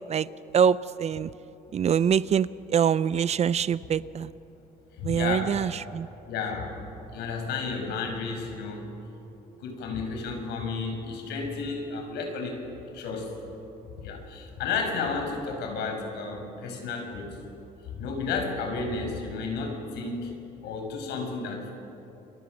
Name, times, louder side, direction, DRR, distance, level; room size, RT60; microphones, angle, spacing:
voice 1, 0.5-1.3 1.7-4.3 5.0-6.1, right 8 dB, 40° right, 17 dB, 0.5 m, -24 dB
voice 2, 4.9-5.6 6.3-6.8 7.1-8.9 9.6-12.6 12.9-13.4 14.0-17.4 18.0-20.4 20.6-21.7, left 4 dB, 85° left, 3 dB, 5.4 m, -32 dB
29.0 x 24.0 x 6.3 m, 3.0 s
cardioid pair, 110°, 17 cm